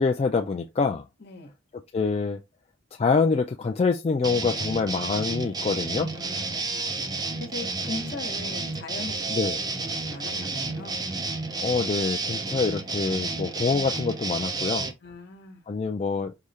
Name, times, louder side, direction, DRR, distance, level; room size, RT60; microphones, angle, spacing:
voice 1, 0.0-1.0 1.7-2.4 3.0-6.1 9.3-9.6 11.6-14.9 15.7-16.3, left 4 dB, 30° left, 0.3 m, -25 dB
voice 2, 1.2-1.5 6.1-6.9 7.4-9.3 9.8-11.1 15.0-15.6, left 3 dB, 55° left, 1.2 m, -39 dB
sound 1, 4.2-14.9, right 3 dB, 20° right, 0.6 m, -31 dB
4.9 x 2.3 x 4.1 m
head